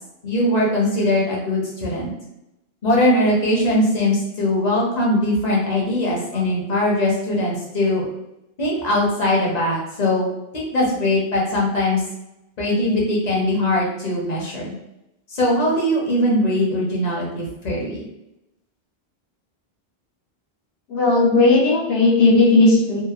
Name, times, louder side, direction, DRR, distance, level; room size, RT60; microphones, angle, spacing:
voice 1, 0.2-2.1 2.8-8.1 8.6-10.3 10.5-12.0 12.6-14.7 15.3-18.0, left 1 dB, 45° left, -3 dB, 0.8 m, -21 dB
voice 2, 20.9-23.1, left 2 dB, 75° left, -3 dB, 0.9 m, -16 dB
2.9 x 2.0 x 2.4 m, 0.88 s
omnidirectional pair, 1.1 m